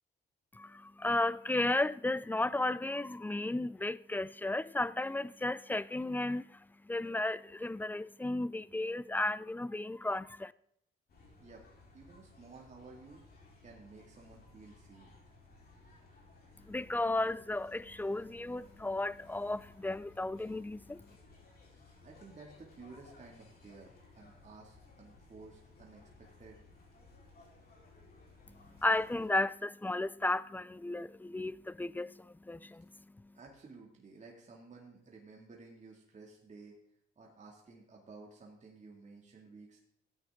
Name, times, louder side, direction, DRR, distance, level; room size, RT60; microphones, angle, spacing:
voice 1, 0.5-10.5 16.7-21.1 28.5-33.3, left 2 dB, 10° left, 0.4 m, -34 dB
sound 1, 11.1-29.3, left 3 dB, 50° left, 4.1 m, -59 dB
voice 2, 11.9-13.2 13.6-15.1 21.7-26.6 33.3-36.7 37.2-39.8, right 3 dB, 35° right, 2.4 m, -54 dB
14.0 x 8.7 x 3.7 m
cardioid pair, 90°, 20 cm